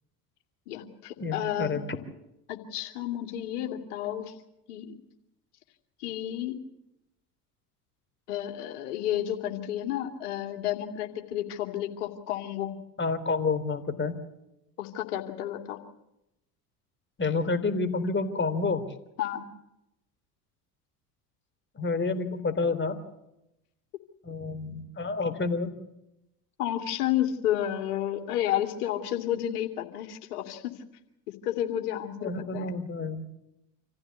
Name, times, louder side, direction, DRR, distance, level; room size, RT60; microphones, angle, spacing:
voice 1, 0.7-1.8 2.5-4.3 4.7-5.0 6.0-6.6 8.3-12.8 14.8-15.8 19.2-19.4 26.6-30.7 31.4-32.7, left 12 dB, 70° left, 5 dB, 2.8 m, -31 dB
voice 2, 1.2-1.8 13.0-14.2 17.2-18.8 21.8-23.0 24.2-25.7 32.2-33.2, left 4 dB, 25° left, 9 dB, 3.5 m, -29 dB
26.5 x 15.0 x 8.4 m, 0.88 s
hypercardioid pair, 70°, 46 cm